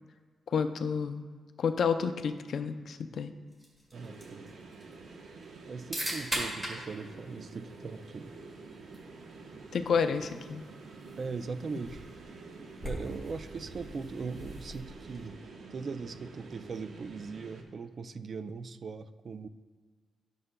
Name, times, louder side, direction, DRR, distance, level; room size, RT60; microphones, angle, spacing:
voice 1, 0.5-1.2 1.6-3.3 9.7-10.6, left 6 dB, 55° left, 9 dB, 0.4 m, -30 dB
sound 1, 3.5-15.4, equal, 15° right, 2.1 m, -43 dB
voice 2, 3.9-4.4 5.7-8.3 11.2-12.0 12.8-15.4 15.7-19.5, right 4 dB, 40° right, 12 dB, 0.3 m, -40 dB
sound 2, 3.9-17.6, right 3 dB, 70° right, 0.9 m, -49 dB
12.0 x 6.8 x 2.2 m, 1.5 s
wide cardioid pair, 140°, 0 cm